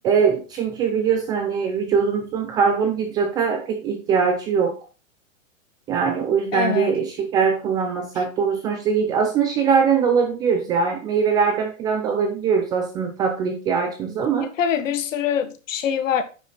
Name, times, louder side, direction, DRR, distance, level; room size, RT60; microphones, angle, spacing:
voice 1, 0.0-4.8 5.9-14.5, right 6 dB, 10° right, 0.3 m, -22 dB
voice 2, 6.5-7.0 8.2-8.3 14.4-16.2, left 8 dB, 70° left, 1.6 m, -24 dB
9.4 x 5.1 x 4.0 m
hypercardioid pair, 140°, 40 cm